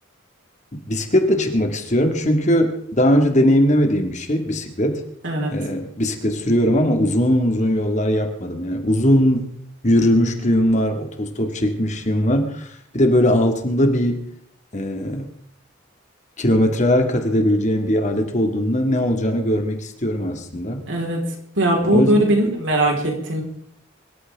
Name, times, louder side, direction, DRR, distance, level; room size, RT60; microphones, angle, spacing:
voice 1, 0.7-5.0 5.5-9.5 9.8-14.3 14.7-15.3 16.4-20.8 21.9-22.3, equal, 40° left, 5 dB, 2.1 m, -20 dB
voice 2, 20.9-21.2 21.6-23.4, right 1 dB, 75° right, 0 dB, 4.3 m, -19 dB
25.0 x 13.0 x 3.6 m, 0.66 s
head